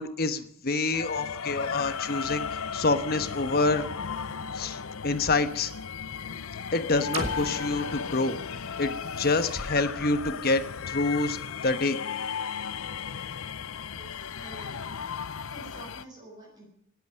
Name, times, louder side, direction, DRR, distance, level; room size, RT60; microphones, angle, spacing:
voice 1, 0.0-2.4 2.7-3.9 4.5-4.8 5.0-5.7 6.7-8.4 8.8-11.4 11.6-12.0, left 3 dB, 45° left, 10 dB, 1.1 m, -27 dB
sound 1, 0.9-16.0, left 6 dB, 70° left, 0.7 m, -35 dB
sound 2, 7.1-11.0, right 2 dB, 65° right, 3.0 m, -41 dB
voice 2, 13.9-14.9 15.2-16.7, right 1 dB, 20° right, -2 dB, 6.0 m, -48 dB
18.0 x 8.3 x 9.4 m, 0.73 s
head